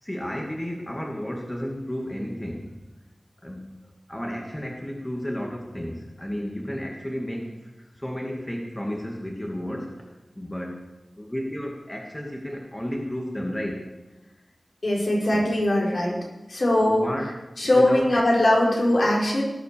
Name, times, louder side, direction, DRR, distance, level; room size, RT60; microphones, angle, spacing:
voice 1, 0.0-2.7 3.4-3.7 4.1-9.9 10.4-10.8 11.2-13.8 15.3-15.4 16.8-17.3 17.6-18.2, equal, 15° left, 0 dB, 2.3 m, -32 dB
voice 2, 14.8-16.2 16.5-17.1 17.6-19.4, left 1 dB, 60° left, -3 dB, 5.1 m, -21 dB
19.0 x 9.1 x 6.9 m, 1.0 s
wide cardioid pair, 80°, 0 cm